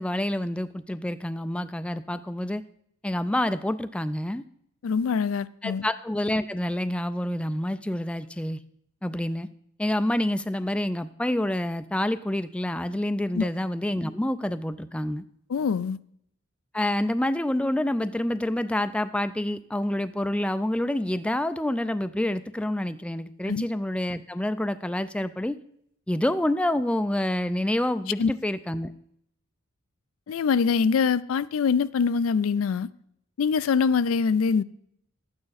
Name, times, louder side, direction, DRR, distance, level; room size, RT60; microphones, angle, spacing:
voice 1, 0.0-2.6 3.0-4.4 5.6-8.6 9.0-9.5 9.8-15.2 16.7-25.6 26.1-28.9, left 1 dB, 5° left, 0.3 m, -27 dB
voice 2, 4.8-5.9 13.3-13.5 15.5-16.0 23.5-23.7 28.2-28.3 30.3-32.9 33.4-34.6, left 5 dB, 80° left, 0.4 m, -24 dB
12.0 x 8.8 x 4.0 m
head